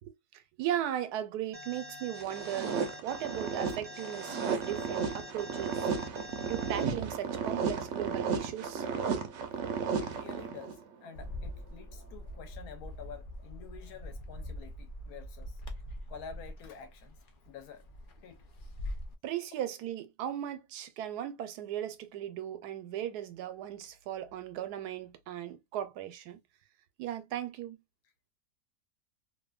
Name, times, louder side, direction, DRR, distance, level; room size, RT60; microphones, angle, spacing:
voice 1, 0.6-2.8 3.0-5.9 6.5-8.8 19.2-26.4 27.0-27.8, right 11 dB, 85° right, 1.1 m, -37 dB
Alarm, 1.5-6.8, left 2 dB, 45° right, 0.3 m, -46 dB
sound 1, 2.2-10.8, right 6 dB, 65° right, 0.7 m, -34 dB
voice 2, 10.0-10.8 11.0-15.6 16.1-17.2 17.4-17.8 18.2-18.4, left 7 dB, 75° left, 1.2 m, -49 dB
Bird, 11.1-19.1, left 1 dB, 90° left, 0.4 m, -43 dB
2.7 x 2.5 x 2.3 m
omnidirectional pair, 1.6 m